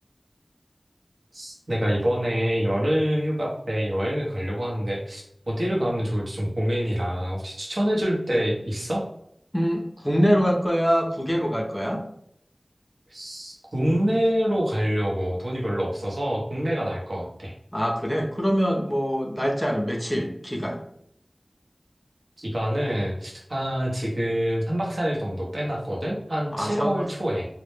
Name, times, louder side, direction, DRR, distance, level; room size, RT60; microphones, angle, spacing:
voice 1, 1.3-9.0 13.1-17.5 22.4-27.5, equal, 70° right, -3 dB, 0.6 m, -26 dB
voice 2, 9.5-12.0 17.7-20.8 26.5-27.1, equal, 10° left, 1 dB, 0.4 m, -24 dB
2.0 x 2.0 x 3.1 m, 0.71 s
wide cardioid pair, 45°, 0 cm